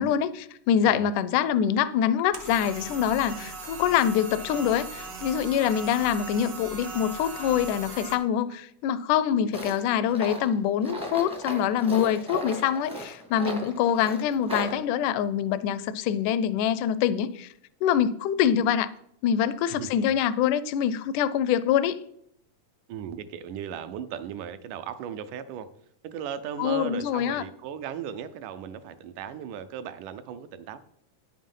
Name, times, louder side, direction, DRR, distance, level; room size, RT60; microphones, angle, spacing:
voice 1, 0.0-17.5 17.8-18.9 19.2-22.0 26.6-27.4, left 9 dB, 80° left, 2.0 m, -25 dB
sound 1, 2.3-8.1, right 3 dB, 60° right, 1.0 m, -39 dB
Tools, 9.5-14.8, equal, 5° right, 0.5 m, -36 dB
voice 2, 22.9-25.7 26.0-30.8, right 8 dB, 80° right, 2.1 m, -37 dB
9.7 x 7.5 x 5.4 m
omnidirectional pair, 3.8 m